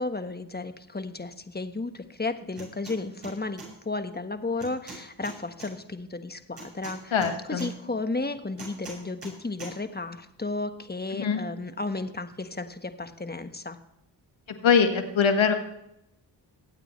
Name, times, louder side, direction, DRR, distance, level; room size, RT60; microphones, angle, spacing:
voice 1, 0.0-7.2 7.5-13.8, left 3 dB, 20° left, 8 dB, 1.3 m, -33 dB
sound 1, 2.5-3.0 3.2-3.7 4.6-5.7 6.6-7.7 8.6-9.3 9.6-9.7, right 3 dB, 60° right, 5.8 m, -42 dB
voice 2, 7.1-7.7 11.1-11.4 14.5-15.5, left 6 dB, 70° left, 7 dB, 1.7 m, -23 dB
21.5 x 8.9 x 3.2 m, 0.82 s
supercardioid pair, 40°, 48 cm